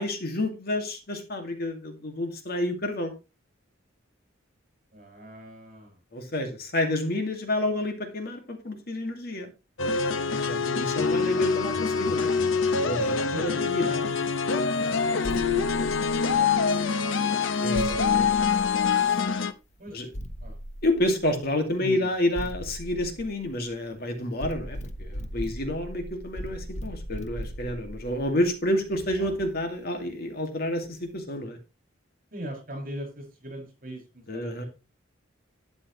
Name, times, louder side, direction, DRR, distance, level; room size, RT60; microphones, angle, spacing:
voice 1, 0.0-3.1 6.1-9.5 10.3-14.2 17.6-19.2 19.9-20.1 20.8-31.6 34.3-34.6, left 1 dB, 55° left, 5 dB, 2.2 m, -30 dB
voice 2, 4.9-6.0 13.3-13.6 15.0-17.6 19.8-20.1 20.4-20.6 21.8-22.1 29.2-29.3 32.3-34.7, equal, 45° right, 3 dB, 6.3 m, -41 dB
sound 1, 9.8-19.5, left 5 dB, 85° left, 0.9 m, -25 dB
sound 2, 15.2-16.7 17.7-19.4 20.1-21.5 22.3-23.9 24.4-29.7, equal, 35° left, 1.2 m, -39 dB
12.0 x 9.8 x 3.2 m, 0.28 s
head